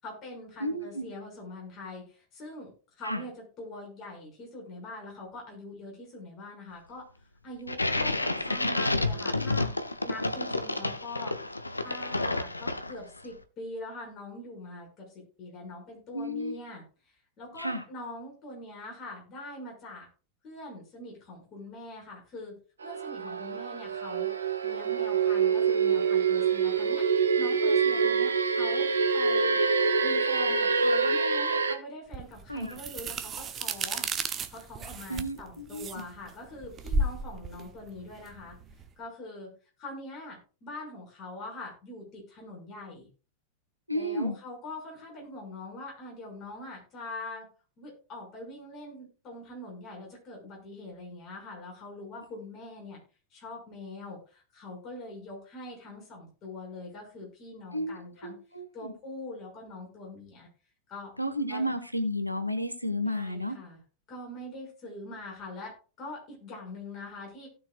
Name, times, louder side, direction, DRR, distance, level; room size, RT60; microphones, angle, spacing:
voice 1, 0.0-7.1 7.4-9.7 10.0-11.4 11.8-16.8 17.4-20.1 20.4-22.6 22.8-24.3 24.6-27.1 27.4-29.6 30.0-34.1 34.5-38.5 39.0-39.5 39.8-43.1 43.9-47.5 47.8-53.0 53.3-58.4 58.7-60.5 60.9-61.1 61.5-61.7 63.1-63.8 64.1-67.5, left 2 dB, 30° left, -1 dB, 6.0 m, -43 dB
voice 2, 0.6-1.0 3.0-3.2 16.1-16.5 17.6-17.8 32.5-32.8 35.1-36.0 43.9-44.4 57.7-58.9 61.2-63.5, equal, 90° right, 6 dB, 1.3 m, -32 dB
sound 1, 7.7-13.2, left 2 dB, 85° left, 0.7 m, -30 dB
sound 2, 22.8-31.8, right 5 dB, 70° right, 1.1 m, -26 dB
sound 3, 32.1-38.9, right 3 dB, 25° right, 0.8 m, -34 dB
17.5 x 6.3 x 2.4 m, 0.36 s
figure-of-eight pair, 90°, 0 cm